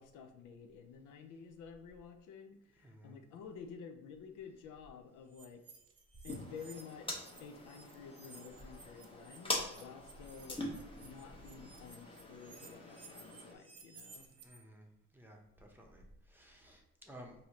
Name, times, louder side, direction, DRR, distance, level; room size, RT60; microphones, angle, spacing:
voice 1, 0.0-5.6 6.2-10.6 11.0-14.3, left 6 dB, 90° left, 5 dB, 0.6 m, -51 dB
voice 2, 2.8-3.2 14.2-14.9 15.1-17.3, equal, 5° right, 0 dB, 0.8 m, -56 dB
sound 1, 5.3-7.4 7.7-14.6, right 4 dB, 50° right, 0.7 m, -57 dB
sound 2, 6.3-13.5, left 1 dB, 15° left, 0.9 m, -44 dB
4.0 x 2.7 x 3.0 m, 0.90 s
cardioid pair, 90°, 30 cm